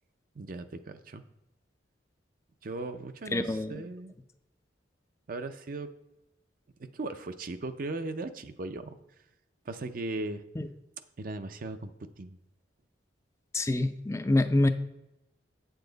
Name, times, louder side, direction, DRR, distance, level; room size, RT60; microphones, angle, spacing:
voice 1, 0.4-1.2 2.6-4.1 5.3-5.9 6.9-9.0 9.7-10.4 11.2-12.4, right 2 dB, 50° right, 10 dB, 0.5 m, -37 dB
voice 2, 3.3-3.7 10.6-10.7 13.5-14.7, left 2 dB, 15° left, 9 dB, 0.4 m, -26 dB
8.6 x 7.0 x 3.9 m, 0.94 s
head